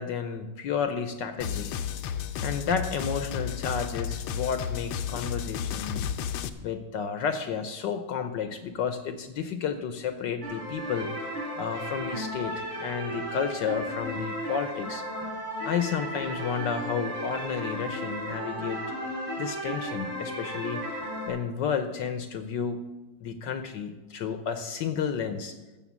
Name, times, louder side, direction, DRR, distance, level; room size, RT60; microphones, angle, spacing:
voice 1, 0.0-1.8 2.4-6.1 6.6-11.1 11.6-15.0 15.6-18.8 19.4-20.8 21.3-22.8 23.2-25.6, left 6 dB, 65° left, 9 dB, 1.3 m, -31 dB
sound 1, 1.4-6.5, left 8 dB, 85° left, 1.6 m, -32 dB
sound 2, 10.4-21.3, equal, 85° right, 4.5 m, -34 dB
14.5 x 6.3 x 7.3 m, 1.1 s
omnidirectional pair, 2.3 m